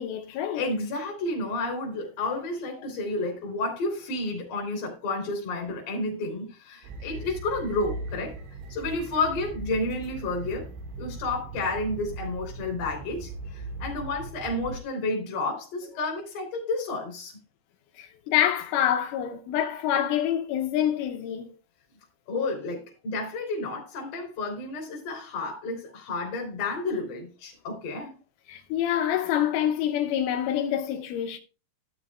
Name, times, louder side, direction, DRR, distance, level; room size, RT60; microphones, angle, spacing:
voice 1, 0.0-0.6 18.0-21.5 28.5-31.4, left 10 dB, 80° left, 3.3 m, -26 dB
voice 2, 0.5-8.4 8.7-10.7 11.0-17.4 22.3-28.1, left 2 dB, 45° left, 4.3 m, -31 dB
sound 1, 6.8-14.8, right 3 dB, 75° right, 4.2 m, -39 dB
13.5 x 11.5 x 2.4 m
omnidirectional pair, 5.7 m